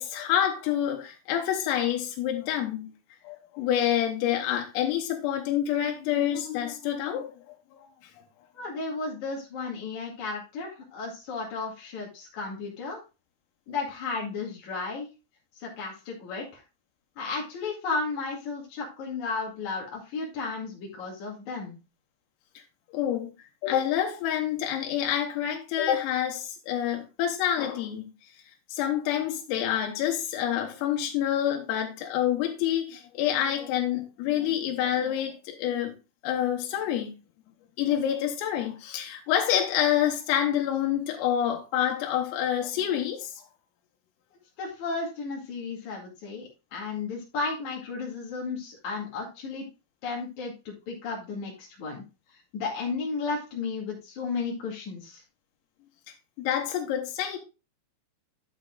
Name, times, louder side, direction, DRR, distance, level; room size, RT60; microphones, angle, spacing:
voice 1, 0.0-2.9 3.2-7.6 22.9-23.3 23.6-28.0 28.7-35.9 36.2-37.1 37.8-43.3 56.4-57.4, left 10 dB, 85° left, 3.8 m, -27 dB
voice 2, 8.5-13.0 13.7-15.1 15.6-16.6 17.2-21.8 44.6-49.7 50.0-52.0 52.5-55.2, left 4 dB, 45° left, 2.8 m, -34 dB
11.5 x 7.2 x 2.4 m
omnidirectional pair, 5.8 m